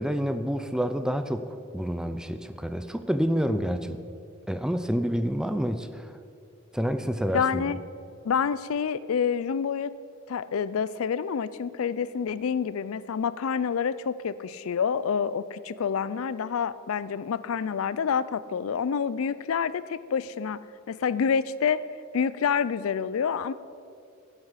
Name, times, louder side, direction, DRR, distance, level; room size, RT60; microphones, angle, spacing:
voice 1, 0.0-1.5 1.7-4.0 4.5-6.1 6.7-7.6, equal, 5° right, 9 dB, 0.5 m, -28 dB
voice 2, 7.3-7.8 8.2-9.9 10.3-20.6 20.9-21.8 22.1-23.5, left 6 dB, 80° left, 17 dB, 0.4 m, -27 dB
16.0 x 8.0 x 5.7 m, 2.5 s
head